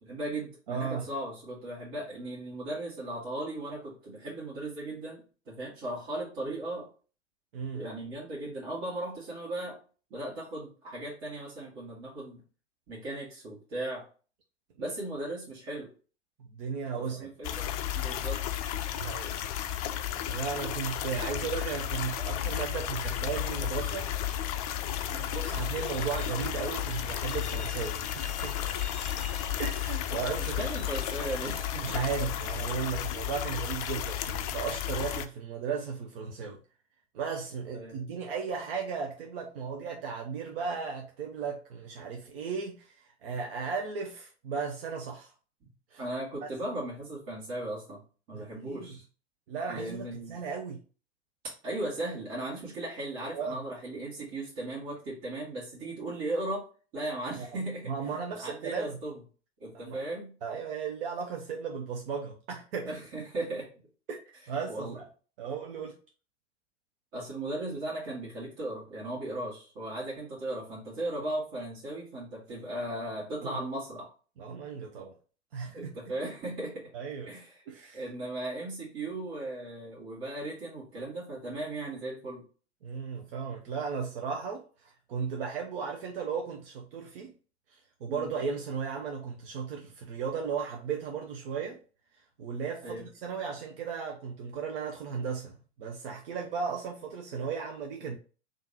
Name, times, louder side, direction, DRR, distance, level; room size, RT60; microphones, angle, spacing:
voice 1, 0.0-6.9 7.7-9.8 10.1-12.4 12.9-14.1 14.8-15.9 16.9-18.6 25.1-25.3 30.4-31.9 37.7-38.1 45.6-45.7 46.0-48.0 48.3-49.0 49.7-50.4 51.6-56.6 56.9-59.2 59.6-60.3 62.8-63.7 64.7-65.0 67.1-74.1 75.7-76.9 77.3-77.6 77.9-82.4 88.1-88.3 92.8-93.1, right 1 dB, 40° right, 1.8 m, -37 dB
voice 2, 0.7-1.1 7.5-7.9 16.5-17.3 19.0-19.4 20.3-24.1 25.3-28.0 28.4-28.5 29.6-30.7 31.8-36.6 37.1-45.3 45.9-46.0 46.4-46.5 48.3-49.0 49.5-50.8 53.3-53.6 57.4-57.5 57.9-59.0 59.8-60.0 60.4-62.9 64.1-64.2 64.5-65.0 65.4-65.9 73.4-73.6 74.4-75.1 75.5-75.9 76.9-77.3 77.7-78.0 82.8-87.3 87.7-91.8 92.4-98.2, right 6 dB, 55° right, 0.7 m, -35 dB
sound 1, 17.4-35.3, left 11 dB, 35° left, 0.4 m, -33 dB
Truck, 24.9-32.3, left 1 dB, ahead, 0.9 m, -48 dB
3.6 x 2.6 x 3.9 m
figure-of-eight pair, 90°, 33 cm